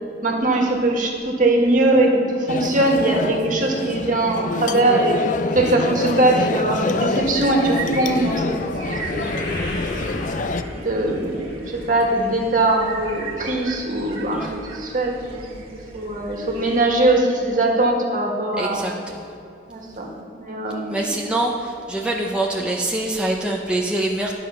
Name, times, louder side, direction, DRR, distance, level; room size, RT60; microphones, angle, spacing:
voice 1, 0.2-5.2 5.5-8.5 8.9-9.4 10.7-15.6 15.9-18.8 19.7-21.1, right 2 dB, 45° right, 0 dB, 1.7 m, -21 dB
sound 1, 2.5-10.6, left 3 dB, 45° left, 0.4 m, -26 dB
sound 2, 6.3-12.7 13.0-13.4 14.0-14.1 14.4-14.5, left 1 dB, 80° left, 2.8 m, -34 dB
sound 3, 7.2-16.9, right 4 dB, 30° right, 1.5 m, -38 dB
voice 2, 18.6-19.3 20.9-24.3, right 1 dB, 5° right, -2 dB, 0.6 m, -25 dB
12.0 x 6.6 x 5.7 m, 2.8 s
head